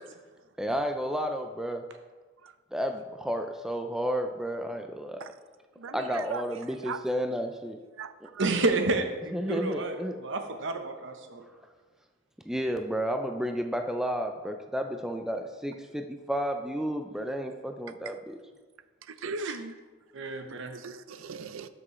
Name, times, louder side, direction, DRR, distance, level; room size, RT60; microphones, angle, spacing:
voice 1, 0.6-1.8 2.7-5.2 5.9-7.8 9.3-10.2 12.5-18.4, equal, 5° right, 4 dB, 0.4 m, -32 dB
voice 2, 5.8-6.4 6.8-7.0 8.0-8.5 19.1-19.8 20.7-21.7, right 4 dB, 85° right, 12 dB, 0.5 m, -38 dB
voice 3, 8.4-11.4 19.4-19.5 20.1-20.8, right 3 dB, 65° right, 6 dB, 0.9 m, -30 dB
12.0 x 6.1 x 3.2 m, 1.3 s
head